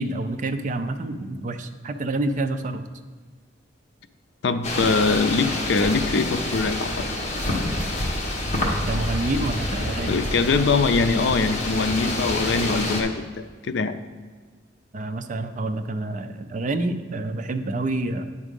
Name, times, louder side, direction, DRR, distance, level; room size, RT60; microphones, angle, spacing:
voice 1, 0.0-2.8 8.6-10.2 14.9-18.3, right 2 dB, 40° right, 7 dB, 0.4 m, -28 dB
voice 2, 4.4-7.0 10.1-14.0, left 4 dB, 65° left, 9 dB, 0.4 m, -23 dB
sound 1, 4.6-13.0, left 1 dB, 35° left, 1.2 m, -27 dB
9.7 x 3.6 x 5.2 m, 1.5 s
head